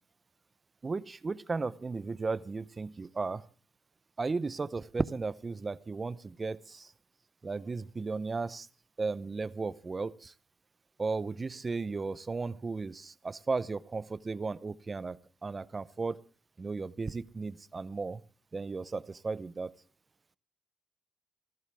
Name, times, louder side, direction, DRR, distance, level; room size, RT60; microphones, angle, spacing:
voice 1, 0.8-3.4 4.2-6.9 7.4-8.7 9.0-10.3 11.0-16.2 16.6-18.2 18.5-19.7, right 4 dB, 30° right, 18 dB, 0.7 m, -35 dB
25.5 x 12.5 x 3.5 m, 0.38 s
supercardioid pair, 65°, 0 cm